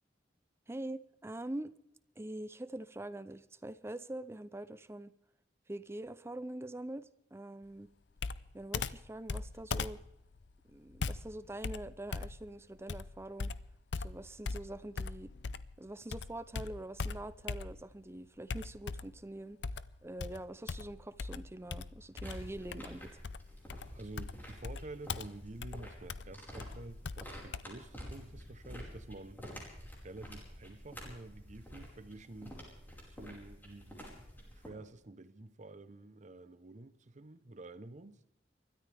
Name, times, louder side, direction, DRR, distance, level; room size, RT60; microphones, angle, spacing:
voice 1, 0.7-1.7 2.2-5.1 5.7-7.9 8.5-10.0 10.7-13.5 14.0-15.3 15.8-19.6 20.0-23.2, right 1 dB, 15° right, 0.6 m, -44 dB
Computer keyboard, 8.2-15.8 16.1-18.0 18.5-19.2 19.6-27.6, left 4 dB, 75° left, 0.6 m, -40 dB
sound 1, 22.2-34.7, equal, 10° left, 5.0 m, -49 dB
voice 2, 23.9-29.4 30.0-32.6 33.0-34.0 34.5-38.2, right 2 dB, 45° right, 0.9 m, -49 dB
30.0 x 13.5 x 3.4 m
head